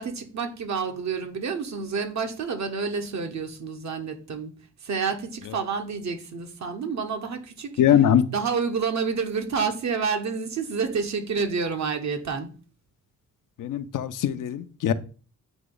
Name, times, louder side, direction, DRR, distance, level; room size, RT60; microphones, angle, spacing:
voice 1, 0.0-4.5 4.8-7.7 8.3-12.5, right 5 dB, 55° right, 1.2 m, -29 dB
voice 2, 7.8-8.3 13.6-14.9, left 10 dB, 75° left, 0.6 m, -21 dB
8.6 x 2.9 x 3.9 m
cardioid pair, 85°, 32 cm